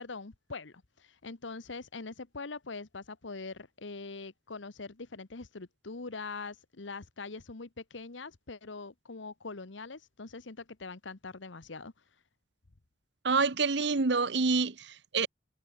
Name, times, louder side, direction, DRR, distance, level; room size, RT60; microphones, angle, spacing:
voice 1, 0.0-11.9, left 3 dB, 85° left, 1.2 m, -43 dB
voice 2, 13.2-15.3, right 4 dB, 70° right, 1.0 m, -27 dB
head